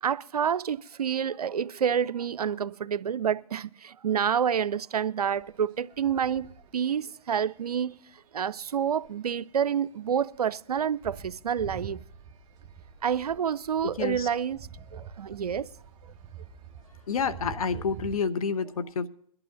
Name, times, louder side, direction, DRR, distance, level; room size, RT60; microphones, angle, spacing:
voice 1, 0.0-8.0 8.3-12.0 13.0-14.6 14.9-15.7, right 8 dB, 85° right, 0.5 m, -28 dB
sound 1, 5.4-7.0 7.6-7.8 8.5-9.1 9.4-9.5 9.7-9.8 10.0-18.2, right 7 dB, 25° right, 1.0 m, -46 dB
voice 2, 14.0-14.3 17.1-19.1, left 5 dB, 65° left, 1.0 m, -29 dB
22.5 x 12.0 x 2.6 m
hypercardioid pair, 140°, 19 cm